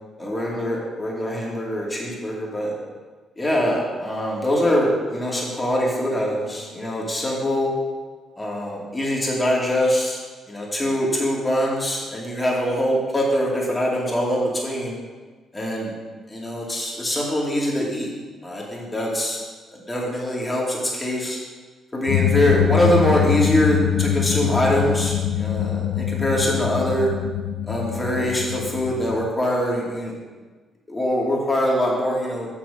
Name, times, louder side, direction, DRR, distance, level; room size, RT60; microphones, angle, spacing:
voice 1, 0.2-2.7 3.4-7.7 8.4-10.2 10.5-15.0 15.5-15.9 16.3-18.1 18.4-19.4 19.7-21.4 21.9-27.1 27.6-30.2 30.9-32.5, equal, 15° left, -3 dB, 2.5 m, -23 dB
sound 1, 22.1-29.3, left 10 dB, 85° left, 0.4 m, -23 dB
6.9 x 6.2 x 5.6 m, 1.3 s
cardioid pair, 90°, 0 cm